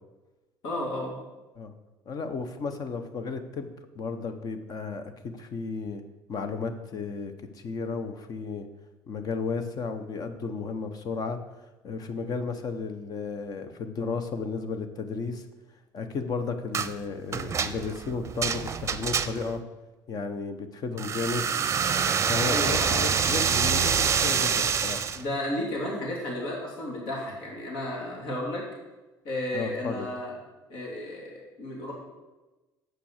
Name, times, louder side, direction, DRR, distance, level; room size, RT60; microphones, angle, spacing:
voice 1, 0.6-1.2 22.5-23.1 25.1-28.6 29.2-30.3 30.7-31.9, left 1 dB, 75° left, -2 dB, 2.6 m, -33 dB
voice 2, 2.1-6.0 6.3-8.7 9.1-11.4 11.8-15.4 15.9-19.6 20.1-21.5 22.3-25.1 29.5-30.1, left 4 dB, 50° left, 8 dB, 1.1 m, -33 dB
sound 1, 16.7-16.9 17.3-19.6 21.0-25.2, right 7 dB, 35° right, 0.6 m, -26 dB
7.8 x 5.8 x 6.6 m, 1.1 s
supercardioid pair, 85°, 8 cm